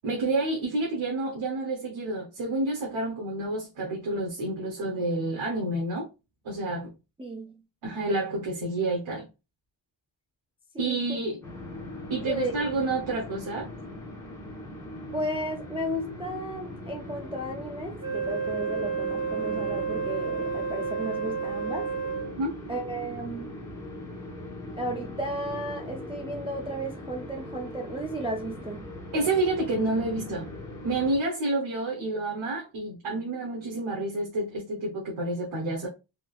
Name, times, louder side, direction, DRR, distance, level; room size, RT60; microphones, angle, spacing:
voice 1, 0.0-6.1 6.4-6.9 7.8-9.2 10.8-11.4 12.1-13.7 22.4-22.5 29.1-30.5 30.8-35.9, right 2 dB, 85° right, 1.1 m, -29 dB
voice 2, 7.2-7.6 10.7-11.0 12.3-12.6 15.1-21.9 22.7-23.5 24.8-28.9, right 1 dB, 15° right, 0.4 m, -34 dB
sound 1, 11.4-31.2, left 1 dB, 5° left, 1.0 m, -40 dB
Wind instrument woodwind instrument, 18.0-22.4, right 5 dB, 45° right, 1.4 m, -31 dB
3.6 x 2.7 x 2.3 m
wide cardioid pair, 135°, 47 cm